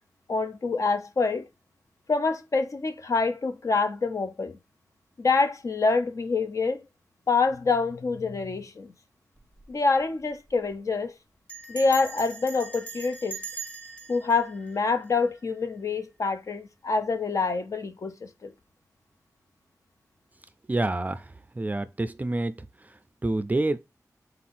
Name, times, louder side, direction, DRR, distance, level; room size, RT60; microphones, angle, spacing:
voice 1, 0.3-1.5 2.1-4.6 5.2-6.8 7.3-8.9 9.7-11.1 11.7-13.4 14.1-18.5, left 4 dB, 60° left, 0.6 m, -26 dB
Bell, 9.4-9.7 10.0-10.1 10.3-10.7 11.5-15.6, right 4 dB, 20° left, 1.4 m, -41 dB
voice 2, 20.7-22.6 23.2-23.8, right 2 dB, 25° right, 0.4 m, -28 dB
3.9 x 2.7 x 4.1 m
wide cardioid pair, 95°, 6 cm